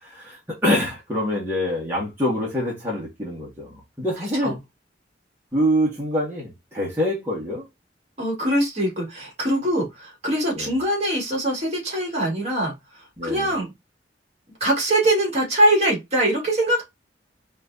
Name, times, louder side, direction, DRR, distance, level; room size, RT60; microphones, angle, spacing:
voice 1, 0.0-4.6 5.5-7.6 10.5-10.7 13.2-13.5, equal, 10° right, 1.7 m, -25 dB
voice 2, 8.2-12.7 13.2-13.7 14.6-16.8, right 1 dB, 35° right, 2.1 m, -22 dB
4.4 x 3.4 x 2.8 m
head